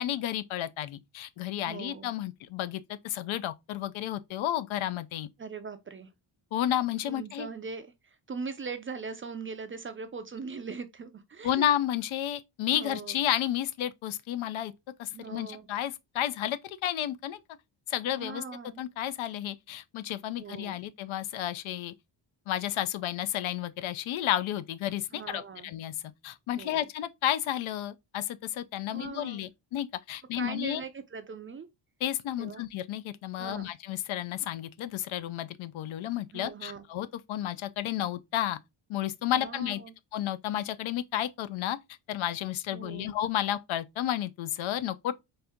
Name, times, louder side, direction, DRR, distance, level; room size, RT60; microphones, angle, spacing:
voice 1, 0.0-5.3 6.5-7.5 11.4-14.7 15.0-17.4 17.9-18.4 18.8-21.9 22.5-25.9 26.2-30.8 32.0-38.6 38.9-39.8 40.1-41.8 42.1-45.1, left 12 dB, 75° left, 0.6 m, -32 dB
voice 2, 1.7-2.1 5.4-6.1 7.0-11.7 12.7-13.2 15.1-15.7 18.1-18.8 20.4-20.8 25.1-25.7 26.5-26.8 28.9-29.5 30.4-31.7 32.4-32.7 33.4-33.7 36.3-36.9 39.4-39.9 42.7-43.2, right 5 dB, 30° right, 0.4 m, -40 dB
4.3 x 2.6 x 3.5 m
cardioid pair, 125°, 48 cm